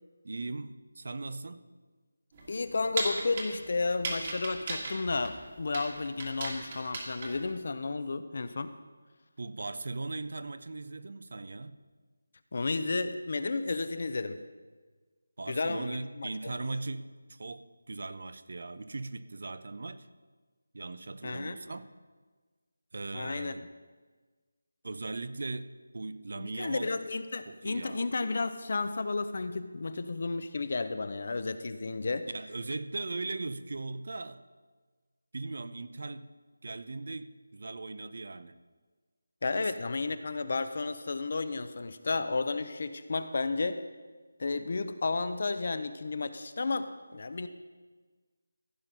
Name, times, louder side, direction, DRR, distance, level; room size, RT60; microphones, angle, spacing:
voice 1, 0.2-1.6 9.4-11.8 15.4-20.1 20.7-21.9 22.9-23.6 24.8-26.9 27.5-28.1 32.3-34.4 35.3-36.3 36.6-38.6 39.5-39.7, right 3 dB, 55° right, 14 dB, 0.5 m, -39 dB
sound 1, 2.3-7.5, right 2 dB, 30° right, 1.7 m, -37 dB
voice 2, 2.5-8.7 12.5-14.4 15.5-16.5 21.2-21.6 23.1-23.5 26.4-32.3 39.4-43.8 44.4-47.5, left 3 dB, 45° left, 11 dB, 0.6 m, -32 dB
15.0 x 5.9 x 5.3 m, 1.4 s
figure-of-eight pair, 175°, 0 cm